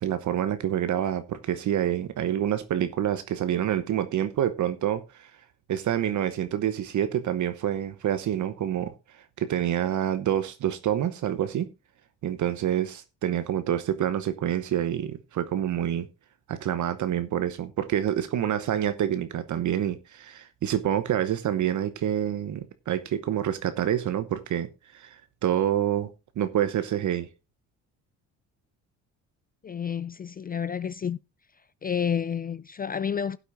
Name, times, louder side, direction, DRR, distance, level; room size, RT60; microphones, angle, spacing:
voice 1, 0.0-5.3 5.7-11.7 12.2-16.1 16.5-27.3, right 10 dB, 55° right, 1.0 m, -27 dB
voice 2, 29.6-31.2 31.8-33.4, left 7 dB, 25° left, 0.4 m, -30 dB
16.0 x 8.2 x 2.6 m
supercardioid pair, 65°, 35 cm